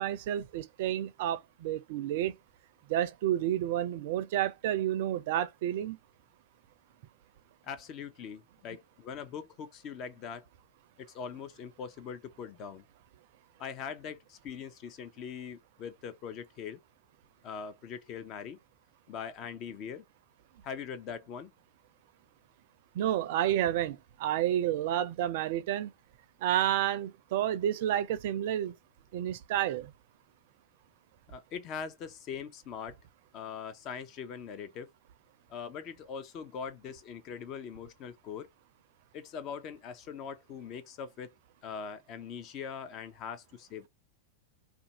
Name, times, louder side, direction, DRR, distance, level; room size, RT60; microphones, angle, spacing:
voice 1, 0.0-2.3 2.9-6.0 23.0-25.9 26.4-28.7 29.1-29.9, right 12 dB, 60° right, 0.4 m, -30 dB
voice 2, 7.6-10.4 11.0-12.8 13.6-16.8 17.4-18.6 19.1-20.0 20.6-21.5 31.3-33.0 33.3-34.9 35.5-38.5 39.1-41.3 41.6-43.9, left 7 dB, 40° left, 0.6 m, -41 dB
2.5 x 2.3 x 2.8 m
hypercardioid pair, 95°, 0 cm